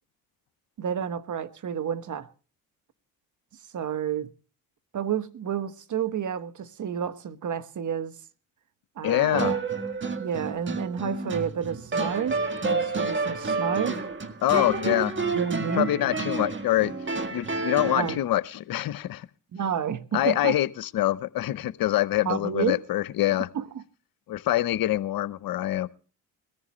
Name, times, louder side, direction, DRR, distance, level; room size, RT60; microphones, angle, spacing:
voice 1, 0.8-2.3 3.7-4.3 4.9-8.1 9.0-9.6 10.2-14.0 15.3-15.9 18.0-18.2 19.5-20.6 22.2-22.8 23.5-23.8, right 8 dB, 45° right, 1.3 m, -30 dB
voice 2, 9.0-9.6 14.4-15.1 15.8-16.9 17.3-19.3 20.1-23.5 24.3-25.9, left 14 dB, 55° left, 0.8 m, -25 dB
sound 1, 9.3-18.2, right 3 dB, 25° right, 1.8 m, -30 dB
21.0 x 14.0 x 3.1 m
hypercardioid pair, 60°, 42 cm